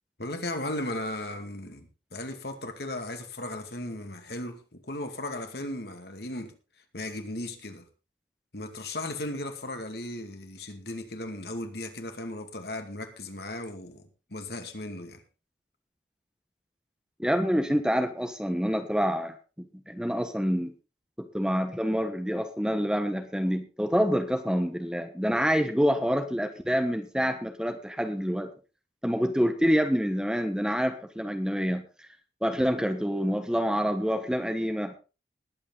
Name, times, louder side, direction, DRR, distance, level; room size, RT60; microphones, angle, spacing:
voice 1, 0.2-6.5 6.9-7.9 8.5-14.0 14.3-15.2, left 1 dB, 65° left, 2.4 m, -36 dB
voice 2, 17.2-19.3 19.9-20.7 21.2-28.5 29.0-32.1 32.4-34.9, equal, 5° right, 1.3 m, -27 dB
20.0 x 8.7 x 3.9 m
head